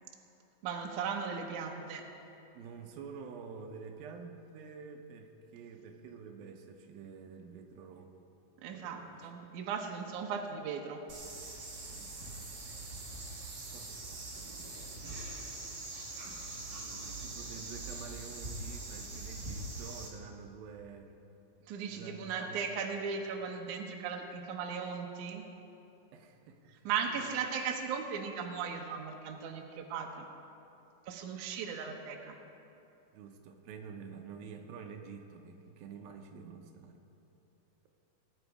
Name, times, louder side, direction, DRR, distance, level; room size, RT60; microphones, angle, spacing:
voice 1, 0.6-2.0 8.6-11.0 21.7-25.4 26.8-30.3 31.1-32.3, right 6 dB, 70° right, 2 dB, 2.3 m, -37 dB
voice 2, 2.5-8.1 8.7-9.9 11.9-12.1 13.7-14.7 16.3-21.1 21.9-22.6 26.1-26.6 27.1-27.3 33.1-37.0, right 5 dB, 85° right, 4 dB, 2.6 m, -49 dB
sound 1, 11.1-20.1, right 2 dB, 40° right, 1.8 m, -43 dB
19.0 x 10.0 x 4.8 m, 2.8 s
omnidirectional pair, 4.2 m